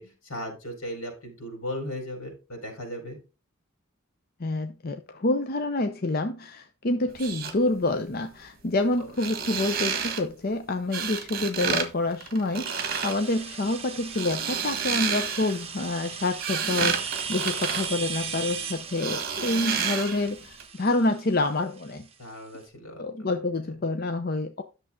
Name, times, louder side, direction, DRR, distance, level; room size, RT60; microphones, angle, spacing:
voice 1, 0.0-3.2 9.0-9.1 22.2-23.7, equal, 85° left, 4.7 m, -37 dB
voice 2, 4.4-22.1 23.0-24.6, left 2 dB, 45° left, 0.6 m, -27 dB
sound 1, 7.1-7.5 9.1-10.2 10.9-11.9 12.1-13.2 14.0-15.6 16.1-18.6 19.0-20.3 20.6-20.7, right 7 dB, 45° right, 1.5 m, -30 dB
sound 2, 12.7-22.3, right 6 dB, 30° right, 1.2 m, -37 dB
11.0 x 6.7 x 3.7 m
head